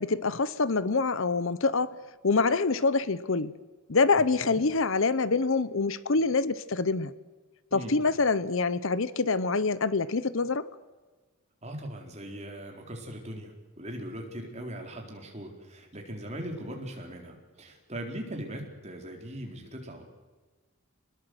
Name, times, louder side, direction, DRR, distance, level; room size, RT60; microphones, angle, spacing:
voice 1, 0.0-1.9 2.2-3.5 3.9-7.1 7.7-10.7, left 4 dB, 60° left, 0.8 m, -26 dB
voice 2, 4.1-4.6 7.7-8.0 11.6-20.0, right 1 dB, 30° right, 4.0 m, -40 dB
25.5 x 20.5 x 7.9 m
head